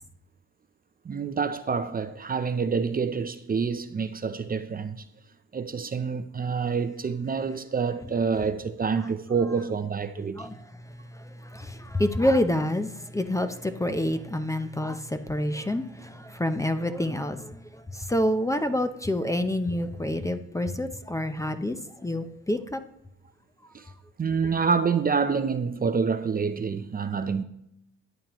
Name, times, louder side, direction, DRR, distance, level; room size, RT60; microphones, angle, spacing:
voice 1, 1.0-5.1 5.5-10.5 23.7-23.8 24.2-27.4, right 5 dB, 30° right, 0.6 m, -27 dB
voice 2, 11.1-21.8 22.0-22.8, left 1 dB, 10° left, 0.6 m, -28 dB
13.5 x 9.1 x 3.1 m
cardioid pair, 90°, 30 cm